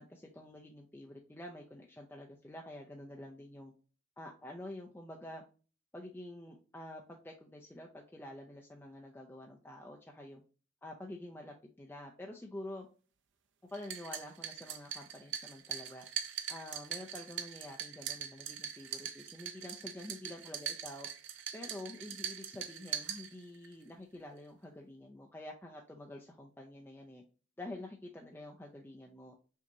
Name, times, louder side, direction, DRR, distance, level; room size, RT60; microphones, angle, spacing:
voice 1, 0.0-3.7 4.2-5.4 5.9-10.4 10.8-12.9 13.7-16.1 16.5-21.1 21.5-27.2 27.6-29.3, left 1 dB, 10° left, 0 dB, 0.5 m, -48 dB
sound 1, 13.7-23.7, right 9 dB, 65° right, 0.5 m, -42 dB
6.0 x 2.8 x 2.6 m, 0.38 s
head